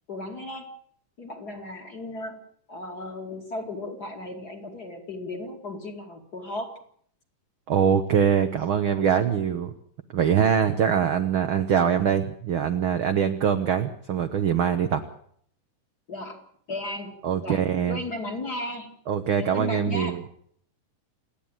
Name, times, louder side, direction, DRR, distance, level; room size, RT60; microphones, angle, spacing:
voice 1, 0.1-0.7 1.2-2.4 2.7-6.8 16.1-17.6 17.9-19.0 19.4-20.2, left 2 dB, 30° left, 3 dB, 2.5 m, -35 dB
voice 2, 7.7-9.7 10.1-15.0 17.2-18.0 19.1-20.2, right 8 dB, 70° right, 8 dB, 1.2 m, -23 dB
28.0 x 10.5 x 8.9 m, 0.64 s
omnidirectional pair, 3.7 m